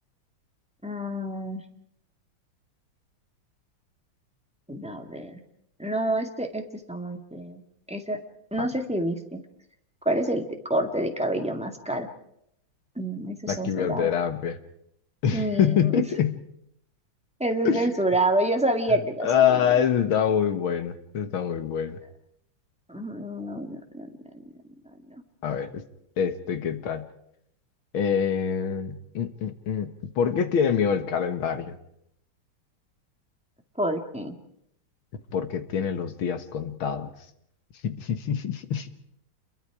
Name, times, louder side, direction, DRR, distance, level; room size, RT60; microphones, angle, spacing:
voice 1, 0.8-1.6 4.7-5.4 5.8-7.6 7.9-8.2 8.5-9.4 10.0-12.1 13.0-14.1 15.3-16.0 17.4-19.8 22.9-24.1 33.8-34.3, right 1 dB, 5° right, 4 dB, 1.8 m, -28 dB
voice 2, 13.5-14.6 15.2-16.4 17.7-17.9 19.2-22.0 25.4-25.8 26.2-27.1 27.9-31.7 35.3-37.1 37.8-38.9, left 8 dB, 80° left, 9 dB, 2.2 m, -25 dB
28.0 x 22.0 x 4.9 m, 0.76 s
omnidirectional pair, 2.3 m